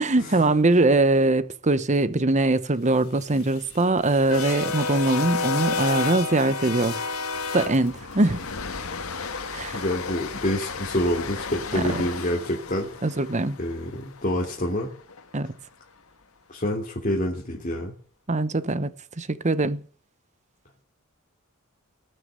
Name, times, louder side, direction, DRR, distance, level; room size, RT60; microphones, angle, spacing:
voice 1, 0.0-7.1 7.5-8.4 9.5-9.8 11.7-11.8 13.0-13.6 15.3-15.5 18.3-18.9 19.2-19.8, right 2 dB, 35° right, 0.9 m, -22 dB
sound 1, 3.0-15.2, left 4 dB, 85° left, 1.8 m, -32 dB
voice 2, 9.7-12.9 13.6-14.9 16.5-17.9, left 1 dB, 40° left, 3.2 m, -27 dB
19.0 x 6.8 x 9.5 m
head